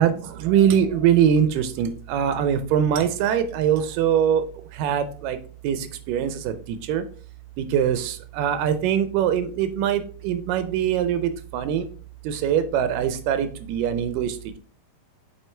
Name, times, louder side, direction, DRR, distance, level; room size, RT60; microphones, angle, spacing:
voice 1, 0.0-4.4 4.7-5.4 5.6-7.0 7.6-11.9 12.2-14.6, right 9 dB, 80° right, 10 dB, 2.1 m, -23 dB
7.5 x 4.8 x 3.3 m, 0.42 s
omnidirectional pair, 4.1 m